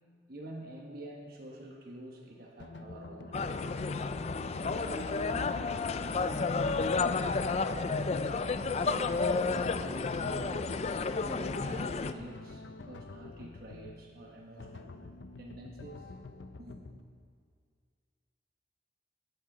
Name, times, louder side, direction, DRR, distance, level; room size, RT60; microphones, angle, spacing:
voice 1, 0.3-4.0 4.6-5.8 6.1-9.3 9.7-10.7 11.2-15.1 15.4-16.1 16.6-16.8, right 1 dB, 55° right, 0 dB, 1.2 m, -47 dB
sound 1, 2.6-17.0, left 3 dB, 80° left, 0.7 m, -48 dB
sound 2, 3.3-12.1, left 4 dB, 35° left, 0.4 m, -31 dB
16.0 x 10.5 x 3.9 m, 2.1 s
head